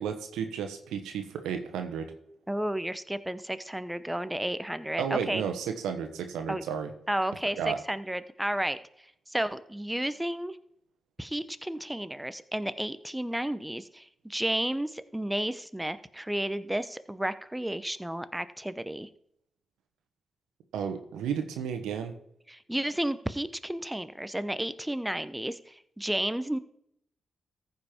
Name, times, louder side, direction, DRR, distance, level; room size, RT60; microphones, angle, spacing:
voice 1, 0.0-2.1 5.0-6.9 7.6-7.8 20.7-22.1, right 7 dB, 85° right, 6 dB, 1.2 m, -32 dB
voice 2, 2.5-5.4 6.5-6.6 7.1-8.8 9.3-10.6 11.2-19.1 22.5-26.6, right 1 dB, 10° right, 14 dB, 0.9 m, -32 dB
14.5 x 5.5 x 4.4 m, 0.72 s
supercardioid pair, 45°, 0 cm